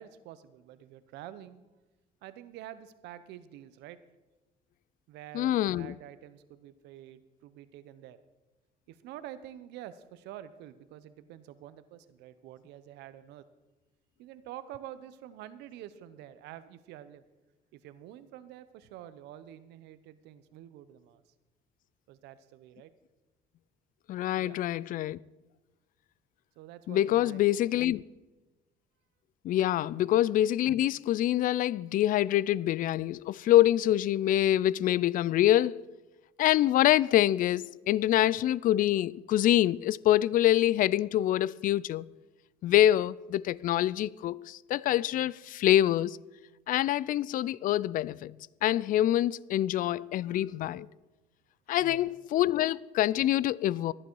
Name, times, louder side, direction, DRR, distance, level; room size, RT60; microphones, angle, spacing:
voice 1, 0.0-1.6 2.2-4.0 5.1-8.2 8.9-13.4 14.2-17.2 17.7-21.2 22.1-22.9 24.4-24.6 26.6-27.9 29.9-30.1 51.8-52.2, right 12 dB, 90° right, 0.8 m, -48 dB
voice 2, 5.3-5.9 24.1-25.2 26.9-28.0 29.4-35.8 36.4-42.1 42.6-46.2 46.7-48.3 48.6-50.9 51.7-53.9, left 13 dB, 55° left, 0.4 m, -25 dB
14.0 x 11.0 x 4.7 m
cardioid pair, 110°, 17 cm